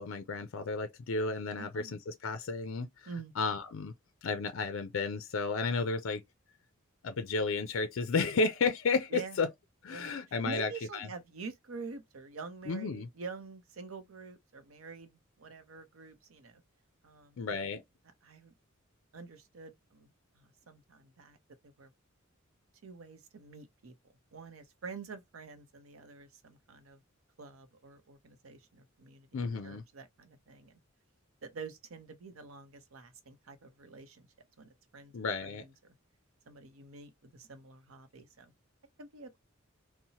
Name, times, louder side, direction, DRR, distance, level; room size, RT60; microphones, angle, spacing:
voice 1, 0.0-3.1 3.4-3.9 4.2-6.2 7.0-9.5 9.8-11.1 12.7-13.1 17.4-17.8 29.3-29.8 35.1-35.6, left 4 dB, 65° left, 0.4 m, -32 dB
voice 2, 1.6-1.9 3.1-3.5 9.1-9.4 9.9-10.2 10.4-16.6 17.0-17.4 18.2-18.5 19.1-20.1 20.3-21.4 21.6-21.9 22.8-23.9 24.3-27.0 27.4-30.8 31.4-34.3 34.6-35.1 35.4-35.9 36.5-38.5 39.0-39.4, right 4 dB, 80° right, 0.6 m, -47 dB
2.8 x 2.0 x 2.8 m
head